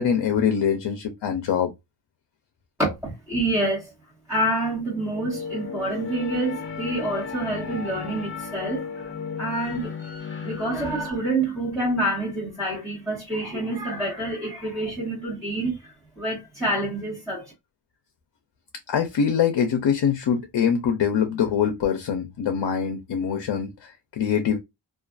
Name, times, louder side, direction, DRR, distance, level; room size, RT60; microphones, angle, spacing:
voice 1, 0.0-1.7 18.9-24.6, left 7 dB, 70° left, 0.6 m, -24 dB
voice 2, 2.8-3.9 4.3-9.1 9.4-17.5, right 1 dB, 5° right, 1.1 m, -27 dB
sound 1, 4.8-11.1, left 6 dB, 30° left, 0.8 m, -35 dB
2.4 x 2.4 x 2.3 m
wide cardioid pair, 125°, 43 cm